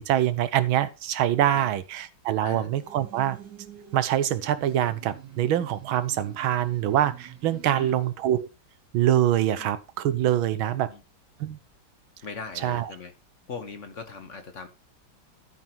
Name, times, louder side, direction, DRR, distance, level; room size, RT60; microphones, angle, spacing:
voice 1, 0.0-3.4 3.9-8.5 8.9-10.9 11.4-11.6 12.6-12.9, right 11 dB, 85° right, 1.7 m, -24 dB
sound 1, 2.7-8.1, right 9 dB, 60° right, 2.0 m, -47 dB
voice 2, 10.6-11.0 12.2-13.1 13.5-14.7, left 5 dB, 45° left, 1.3 m, -40 dB
12.5 x 5.5 x 4.5 m
omnidirectional pair, 2.2 m